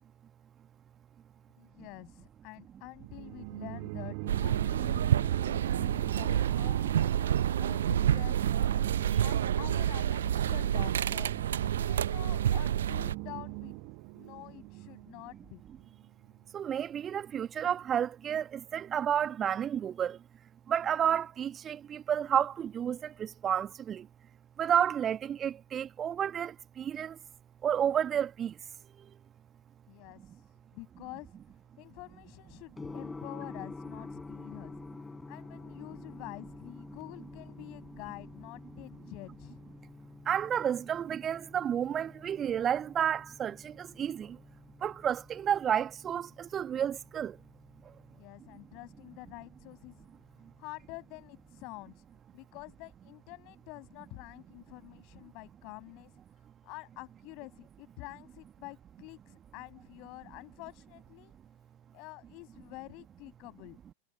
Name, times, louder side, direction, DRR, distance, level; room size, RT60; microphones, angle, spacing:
voice 1, 1.6-7.1 7.6-8.9 9.2-13.7 14.1-15.6 29.9-31.4 31.8-34.7 35.3-39.6 48.1-50.1 50.6-52.0 52.3-56.2 56.6-61.3 61.9-63.8, left 26 dB, 40° left, 7.8 m, -48 dB
sound 1, 3.0-16.4, right 40 dB or more, 45° right, 4.9 m, -40 dB
sound 2, 4.3-13.2, right 10 dB, 65° right, 1.2 m, -29 dB
voice 2, 16.5-20.2 20.7-24.1 24.6-27.2 27.6-28.6 29.0-29.1 40.3-44.4 44.8-47.4, right 9 dB, 25° right, 1.9 m, -31 dB
Gong, 32.7-51.8, left 3 dB, 10° left, 5.9 m, -49 dB
figure-of-eight pair, 90°, 0 cm